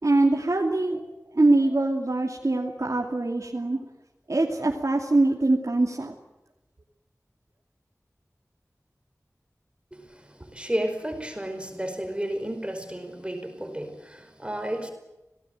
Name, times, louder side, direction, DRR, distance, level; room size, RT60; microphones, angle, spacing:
voice 1, 0.0-3.8 4.3-6.1, right 2 dB, 65° right, 0 dB, 2.7 m, -23 dB
voice 2, 9.9-14.9, right 1 dB, 20° right, 6 dB, 5.0 m, -32 dB
26.0 x 18.5 x 7.8 m, 1.0 s
wide cardioid pair, 50°, 6 cm